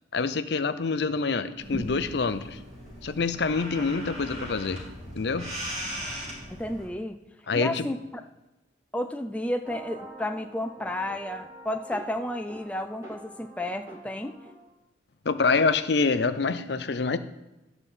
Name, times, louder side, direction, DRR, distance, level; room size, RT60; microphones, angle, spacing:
voice 1, 0.1-2.6 3.0-4.8 5.1-5.5 7.5-7.8 15.3-17.2, left 4 dB, 60° left, 11 dB, 0.6 m, -26 dB
sound 1, 1.6-6.9, equal, 35° right, 2.9 m, -38 dB
voice 2, 6.6-7.2 7.5-8.2 8.9-14.4, left 1 dB, 5° left, 5 dB, 0.4 m, -32 dB
sound 2, 9.6-14.7, right 2 dB, 15° right, 2.3 m, -45 dB
11.0 x 4.1 x 7.2 m, 1.0 s
head